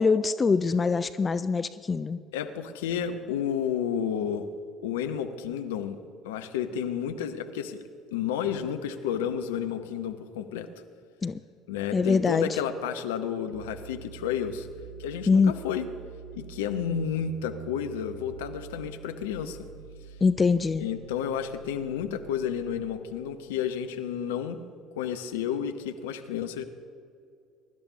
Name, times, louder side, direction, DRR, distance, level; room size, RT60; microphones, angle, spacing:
voice 1, 0.0-2.2 11.2-11.4 11.9-12.6 15.3-15.5 20.2-20.9, left 4 dB, 25° left, 13 dB, 0.4 m, -23 dB
voice 2, 2.3-4.5 4.8-6.0 6.2-7.8 8.1-10.7 11.7-14.7 15.0-15.9 16.3-19.7 20.8-24.6 24.9-26.6, left 8 dB, 70° left, 9 dB, 0.8 m, -31 dB
sound 1, 13.5-23.1, right 9 dB, 85° right, 0.4 m, -46 dB
23.0 x 12.5 x 2.8 m, 2.4 s
figure-of-eight pair, 60°, 0 cm